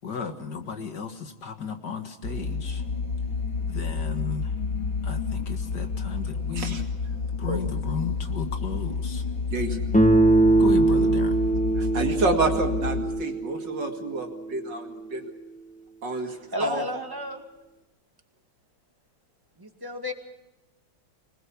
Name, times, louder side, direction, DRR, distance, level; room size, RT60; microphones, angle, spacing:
voice 1, 0.0-2.8 3.7-4.5 5.0-6.8 7.4-9.2 10.6-11.4, left 6 dB, 60° left, 6 dB, 2.2 m, -34 dB
sound 1, 2.2-13.0, left 5 dB, 75° left, 4.7 m, -30 dB
voice 2, 9.5-9.9 11.8-15.3 16.0-16.8, right 3 dB, 65° right, 4 dB, 2.9 m, -29 dB
Guitar, 9.9-14.7, right 2 dB, 5° left, 1.4 m, -22 dB
voice 3, 16.2-17.4 19.6-20.1, left 1 dB, 10° right, 4 dB, 2.0 m, -32 dB
26.0 x 20.0 x 7.1 m, 0.98 s
omnidirectional pair, 2.2 m